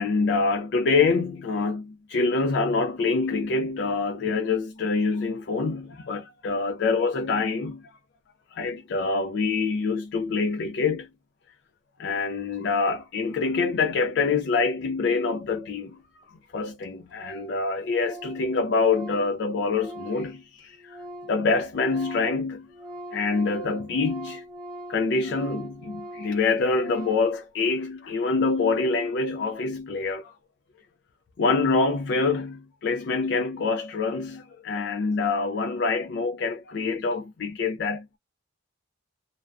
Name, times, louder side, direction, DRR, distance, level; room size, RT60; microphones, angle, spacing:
voice 1, 0.0-7.9 8.5-11.1 12.0-21.0 21.3-22.7 23.1-24.4 24.9-30.3 31.4-38.0, left 4 dB, 55° left, 0.4 m, -26 dB
Organ, 16.2-16.3 16.5-16.6 16.8-16.9 17.2-17.6 17.8-21.4 21.7-27.4, equal, 25° right, 1.0 m, -42 dB
2.5 x 2.2 x 2.3 m
head